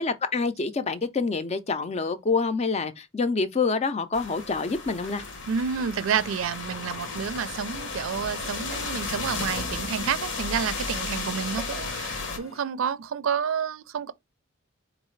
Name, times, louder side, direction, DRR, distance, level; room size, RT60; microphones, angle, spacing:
voice 1, 0.0-5.2, left 4 dB, 30° left, 0.4 m, -27 dB
sound 1, 4.1-12.4, left 3 dB, 65° left, 0.9 m, -34 dB
sound 2, 4.9-12.6, left 3 dB, 90° left, 1.3 m, -49 dB
voice 2, 5.5-14.1, right 7 dB, 85° right, 0.4 m, -29 dB
sound 3, 8.4-9.8 11.4-12.2, right 3 dB, 15° right, 0.6 m, -46 dB
4.6 x 2.4 x 3.1 m
head